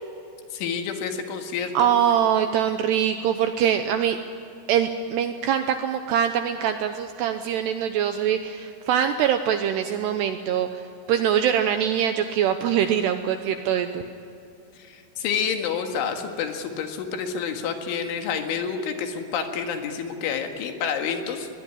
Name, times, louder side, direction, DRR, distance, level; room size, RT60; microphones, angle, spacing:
voice 1, 0.5-1.9 14.8-21.5, left 6 dB, 75° left, 5 dB, 4.1 m, -29 dB
voice 2, 1.7-4.2 4.7-14.1, right 9 dB, 80° right, 8 dB, 2.5 m, -23 dB
21.5 x 21.0 x 9.9 m, 2.6 s
omnidirectional pair, 5.7 m